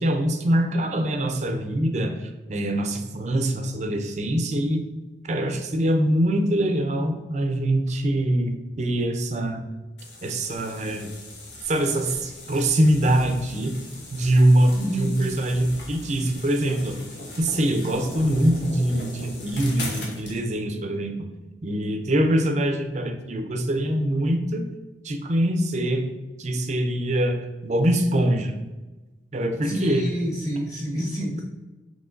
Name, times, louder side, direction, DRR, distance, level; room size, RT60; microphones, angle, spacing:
voice 1, 0.0-2.1 2.5-4.8 5.3-9.6 10.2-11.1 11.7-13.7 14.1-16.9 17.4-21.2 21.6-24.7 25.0-26.0 26.4-27.4 27.6-28.5 29.3-30.0, right 1 dB, 40° right, 4 dB, 0.5 m, -23 dB
sound 1, 10.0-20.4, left 2 dB, 80° left, 1.0 m, -39 dB
voice 2, 14.7-15.1 29.6-31.4, equal, 20° left, -5 dB, 1.3 m, -28 dB
5.6 x 3.2 x 2.6 m, 1.1 s
head